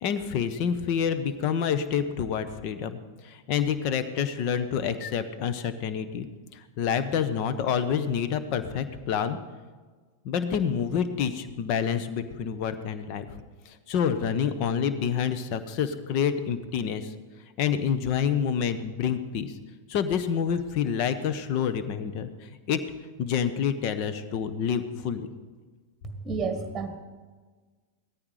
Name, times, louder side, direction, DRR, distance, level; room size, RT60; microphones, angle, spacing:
voice 1, 0.0-3.0 3.2-6.3 6.5-9.4 10.2-13.4 13.7-17.1 17.6-19.5 19.9-22.8 23.2-25.3, left 7 dB, 45° left, 11 dB, 1.1 m, -28 dB
voice 2, 26.0-27.0, right 5 dB, 15° right, 7 dB, 1.6 m, -31 dB
17.0 x 13.5 x 5.0 m, 1.4 s
figure-of-eight pair, 90°, 0 cm